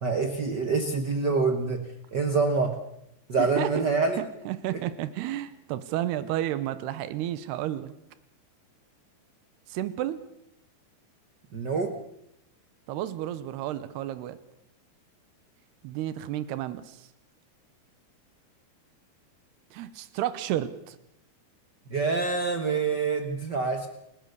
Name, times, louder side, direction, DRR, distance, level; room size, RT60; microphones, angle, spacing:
voice 1, 0.0-1.8 2.1-2.8 3.3-4.2 4.7-4.8 11.5-11.9 21.9-23.9, right 4 dB, 70° right, 6 dB, 1.0 m, -26 dB
voice 2, 3.4-3.7 4.2-7.9 9.7-10.2 12.9-14.4 15.8-17.1 19.7-21.0, right 13 dB, 90° right, 14 dB, 3.1 m, -31 dB
29.5 x 16.5 x 6.9 m, 0.80 s
omnidirectional pair, 4.6 m